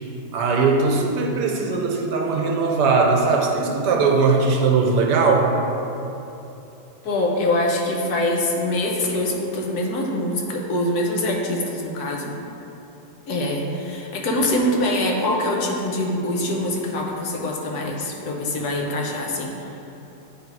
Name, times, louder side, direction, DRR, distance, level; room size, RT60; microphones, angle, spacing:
voice 1, 0.3-5.6, right 4 dB, 80° right, 2 dB, 1.3 m, -19 dB
voice 2, 7.0-12.3 13.3-19.7, left 1 dB, 65° left, -1 dB, 1.3 m, -24 dB
8.8 x 3.4 x 4.6 m, 2.9 s
omnidirectional pair, 1.8 m